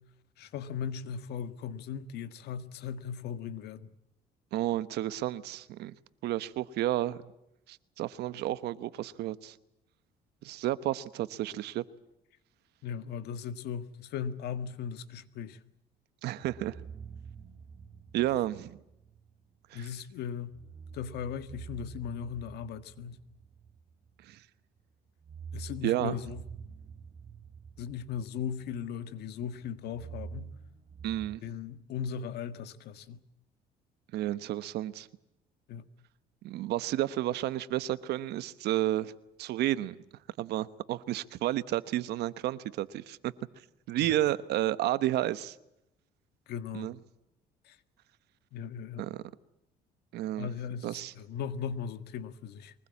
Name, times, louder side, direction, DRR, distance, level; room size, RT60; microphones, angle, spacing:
voice 1, 0.4-3.9 12.8-15.6 19.7-20.5 20.9-23.2 25.5-26.5 27.8-30.5 31.4-33.2 35.7-35.8 46.5-46.9 47.7-47.8 48.5-49.1 50.4-52.7, left 7 dB, 75° left, 1.7 m, -38 dB
voice 2, 4.5-5.9 6.2-7.2 7.7-9.6 10.4-11.8 16.2-16.8 18.1-18.8 19.7-19.9 24.2-24.4 25.8-26.2 31.0-31.4 34.1-35.1 36.4-39.1 39.4-40.0 40.4-43.3 43.9-45.6 46.7-47.0 49.0-49.2 50.1-50.5 50.8-51.1, right 14 dB, 80° right, 1.1 m, -31 dB
sound 1, 16.4-19.3 20.5-24.4 25.1-29.1 29.4-31.4, right 6 dB, 40° right, 3.5 m, -47 dB
23.5 x 20.0 x 8.5 m
cardioid pair, 110°, 17 cm